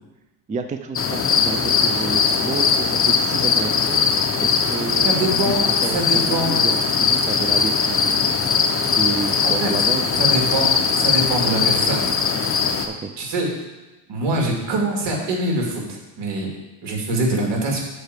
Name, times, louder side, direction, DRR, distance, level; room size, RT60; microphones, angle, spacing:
voice 1, 0.5-4.0 4.4-5.3 5.7-8.2 8.5-10.3 13.0-13.1, right 4 dB, 15° right, 7 dB, 0.4 m, -30 dB
sound 1, 1.0-12.9, left 6 dB, 25° left, 0.8 m, -20 dB
voice 2, 5.0-5.6 5.9-6.7 9.4-9.7 10.2-12.0 13.2-13.5 14.1-16.5 16.8-17.8, right 2 dB, 60° right, 0 dB, 2.6 m, -24 dB
6.6 x 4.6 x 6.6 m, 1.1 s
supercardioid pair, 95°, 48 cm